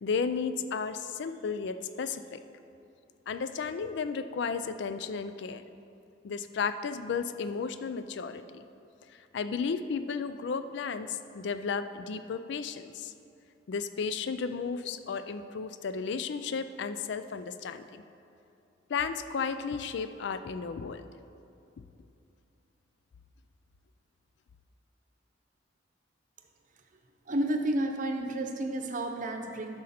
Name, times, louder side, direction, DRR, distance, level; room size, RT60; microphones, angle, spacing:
voice 1, 0.0-2.4 3.3-5.6 6.2-8.6 9.1-13.1 13.7-18.0 18.9-21.0, left 5 dB, 65° left, 11 dB, 0.4 m, -34 dB
voice 2, 27.3-29.8, right 1 dB, 45° right, 4 dB, 0.7 m, -31 dB
10.5 x 6.3 x 4.2 m, 2.7 s
head